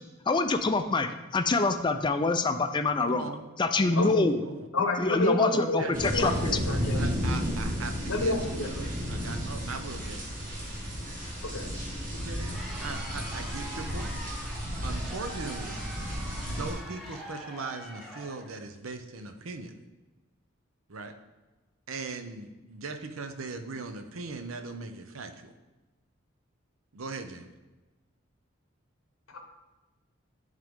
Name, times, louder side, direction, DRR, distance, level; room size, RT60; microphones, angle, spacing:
voice 1, 0.3-3.3 3.6-4.4 5.0-6.5, left 3 dB, 20° left, 7 dB, 0.4 m, -26 dB
voice 2, 3.0-3.5 3.7-4.7 5.5-10.3 12.2-14.1 14.8-15.8 16.5-19.8 20.9-21.2 21.9-25.5 26.9-27.5, right 3 dB, 85° right, 8 dB, 0.7 m, -39 dB
voice 3, 4.7-7.0 8.1-8.7 11.4-11.7 29.3-29.4, left 2 dB, 90° left, 4 dB, 1.1 m, -29 dB
sound 1, 5.9-16.7, equal, 40° right, 1.7 m, -33 dB
Crowd, 12.1-18.6, right 1 dB, ahead, 0.7 m, -44 dB
10.5 x 3.8 x 3.6 m, 1.2 s
head